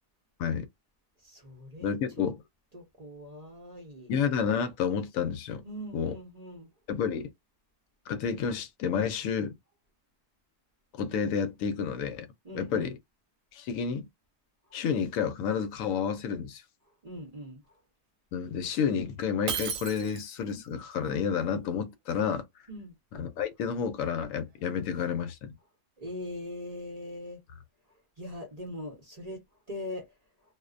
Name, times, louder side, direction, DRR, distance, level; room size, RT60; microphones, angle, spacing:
voice 1, 1.2-2.4 2.7-4.1 5.6-6.7 12.4-13.0 14.7-14.8 17.0-17.6 22.7-22.9 26.0-27.4 28.2-30.1, left 1 dB, 35° right, 0.7 m, -41 dB
voice 2, 1.8-2.4 4.1-5.6 5.9-6.2 6.9-7.3 8.1-9.5 11.0-12.3 12.5-12.9 13.5-14.1 14.7-16.6 18.3-22.5 23.1-25.5, left 7 dB, 80° left, 1.0 m, -30 dB
Shatter, 19.5-20.5, right 7 dB, 80° right, 1.0 m, -34 dB
2.5 x 2.1 x 2.4 m
omnidirectional pair, 1.4 m